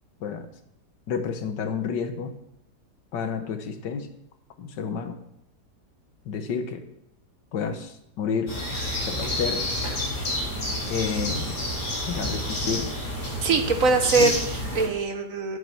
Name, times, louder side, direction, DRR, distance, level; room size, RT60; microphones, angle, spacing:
voice 1, 1.1-2.3 3.1-4.1 4.6-5.2 6.2-6.8 7.5-8.5 9.0-9.6 10.9-11.6 12.0-12.9 14.2-14.3, left 6 dB, 80° left, 8 dB, 1.7 m, -30 dB
sound 1, 8.5-14.9, left 1 dB, 55° left, 5.0 m, -29 dB
voice 2, 13.4-15.6, right 4 dB, 55° right, 6 dB, 1.3 m, -23 dB
9.9 x 7.4 x 6.0 m, 0.77 s
omnidirectional pair, 1.9 m